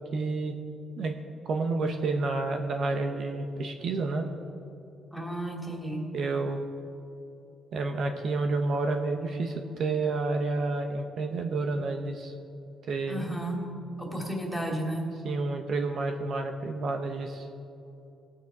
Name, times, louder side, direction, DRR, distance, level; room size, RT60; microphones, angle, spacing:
voice 1, 0.1-0.6 1.0-1.1 1.4-4.3 6.1-6.6 7.7-12.3 12.9-13.2 15.2-17.5, right 3 dB, 65° right, 4 dB, 1.0 m, -30 dB
voice 2, 5.1-6.1 13.1-13.7 14.0-15.2, right 1 dB, 5° right, 0 dB, 2.8 m, -33 dB
19.0 x 9.1 x 4.8 m, 2.8 s
cardioid pair, 90°, 0 cm